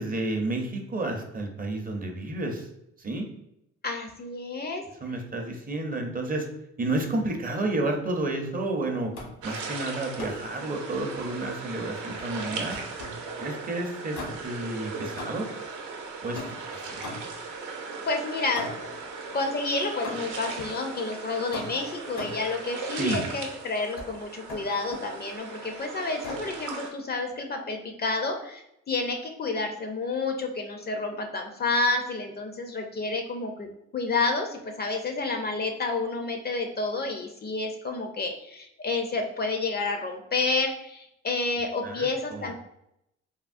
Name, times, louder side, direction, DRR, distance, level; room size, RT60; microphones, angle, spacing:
voice 1, 0.0-2.7 3.0-3.3 5.0-6.5 6.8-9.1 9.4-12.8 13.4-15.5 16.2-17.0 22.9-23.2 41.8-42.5, right 2 dB, 30° right, 3 dB, 0.5 m, -31 dB
voice 2, 3.8-4.8 18.1-19.0 19.3-42.5, left 3 dB, 35° left, 4 dB, 0.4 m, -30 dB
sound 1, 9.1-9.5 10.2-10.6 12.2-13.3 14.1-14.7 15.2-15.6 16.3-17.5 18.6-19.0 20.0-20.5 21.5-22.5 24.0-24.1 24.5-25.1 26.2-26.6, left 2 dB, 80° left, 1.0 m, -39 dB
sound 2, 9.4-26.9, right 4 dB, 80° right, 0.7 m, -38 dB
3.5 x 2.0 x 2.4 m, 0.80 s
cardioid pair, 90°, 30 cm